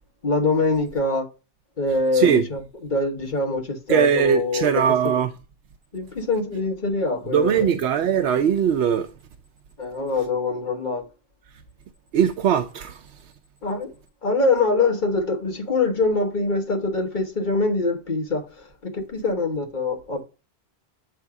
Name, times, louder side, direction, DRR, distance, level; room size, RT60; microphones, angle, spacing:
voice 1, 0.2-1.3 1.8-4.8 5.9-7.7 9.8-11.0 13.6-13.9 14.2-20.2, left 3 dB, 50° left, 1.3 m, -24 dB
voice 2, 2.1-2.5 3.9-5.3 7.3-9.1 12.1-13.0, right 8 dB, 85° right, 0.9 m, -20 dB
7.9 x 3.4 x 4.7 m
omnidirectional pair, 1.1 m